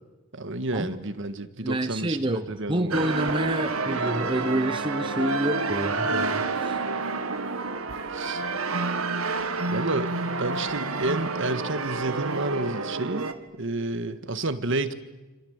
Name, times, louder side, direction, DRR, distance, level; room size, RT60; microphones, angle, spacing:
voice 1, 0.3-3.1 8.1-8.4 9.7-13.3 13.6-14.9, right 2 dB, 60° right, 11 dB, 1.7 m, -30 dB
voice 2, 1.6-6.8, right 1 dB, 25° right, 9 dB, 1.1 m, -28 dB
sound 1, 2.9-13.3, right 3 dB, 80° right, 2.0 m, -29 dB
27.5 x 26.5 x 8.2 m, 1.2 s
head